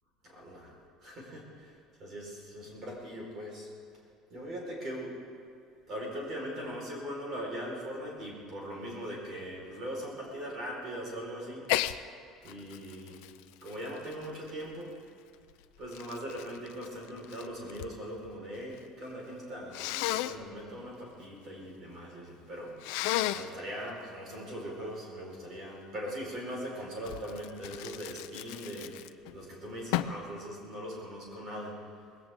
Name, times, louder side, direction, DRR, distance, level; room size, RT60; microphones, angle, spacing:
voice 1, 0.2-0.7 1.0-3.7 4.3-5.1 5.9-11.7 12.4-13.2 13.6-14.9 15.8-29.0 29.3-31.8, equal, 30° right, -2 dB, 4.8 m, -40 dB
Sneeze, 11.6-12.0 12.4-14.8 15.5-17.9 18.2-18.9 19.7-20.4 22.8-23.5 27.0-29.3 29.9-30.2, left 15 dB, 75° left, 0.5 m, -34 dB
20.5 x 17.0 x 3.8 m, 2.4 s
cardioid pair, 180°, 0 cm